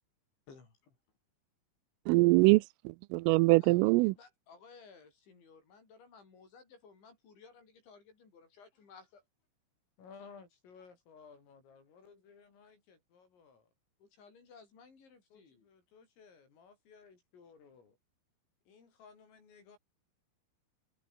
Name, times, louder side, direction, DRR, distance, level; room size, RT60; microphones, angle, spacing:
voice 1, 0.5-0.8 3.6-9.2 14.0-15.7, left 5 dB, 65° left, 9.7 m, -57 dB
voice 2, 2.1-4.2, right 23 dB, 85° right, 3.2 m, -24 dB
voice 3, 10.0-13.7 15.3-18.0 18.7-19.8, left 5 dB, 85° left, 9.7 m, -57 dB
omnidirectional pair, 5.8 m